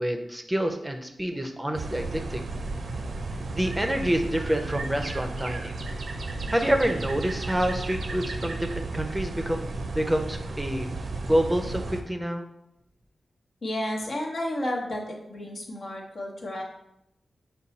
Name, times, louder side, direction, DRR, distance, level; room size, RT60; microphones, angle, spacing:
voice 1, 0.0-2.4 3.5-5.7 6.5-10.9 11.3-12.5, right 1 dB, 15° right, 5 dB, 0.5 m, -27 dB
sound 1, 1.7-12.0, right 2 dB, 70° right, 0.4 m, -33 dB
voice 2, 13.6-16.6, left 1 dB, 70° left, -1 dB, 1.0 m, -32 dB
5.2 x 2.3 x 4.0 m, 0.83 s
cardioid pair, 55°, 0 cm